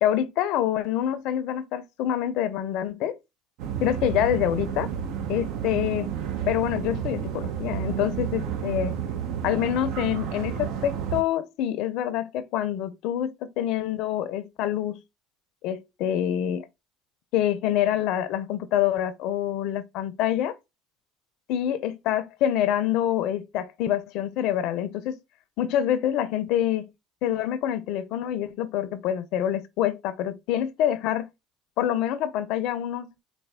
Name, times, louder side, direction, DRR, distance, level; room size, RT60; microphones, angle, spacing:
voice 1, 0.0-3.2 3.8-4.9 5.3-6.1 6.5-9.0 9.4-15.0 15.6-16.7 17.3-20.5 21.5-25.2 25.6-26.9 27.2-31.3 31.8-33.2, left 11 dB, 70° left, 0.5 m, -26 dB
sound 1, 3.6-11.2, right 9 dB, 70° right, 0.8 m, -31 dB
4.2 x 2.2 x 3.5 m
supercardioid pair, 85°, 0 cm